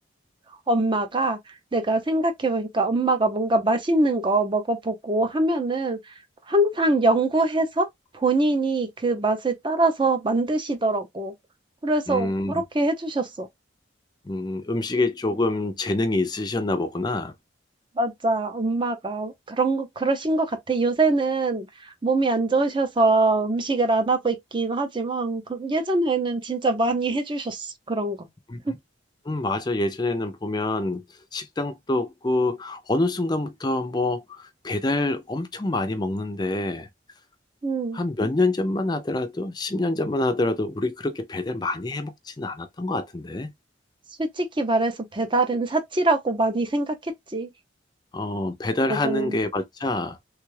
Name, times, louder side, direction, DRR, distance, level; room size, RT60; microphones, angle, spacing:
voice 1, 0.7-1.4 1.7-6.0 6.5-7.9 8.1-11.3 11.8-13.5 18.0-28.3 28.7-28.8 37.6-38.0 44.2-47.5 48.9-49.4, right 2 dB, 25° right, 0.5 m, -23 dB
voice 2, 12.1-12.6 14.2-17.3 28.5-28.8 29.3-31.0 31.3-36.9 37.9-43.5 48.1-50.2, left 2 dB, 20° left, 0.4 m, -26 dB
3.4 x 2.3 x 3.1 m
head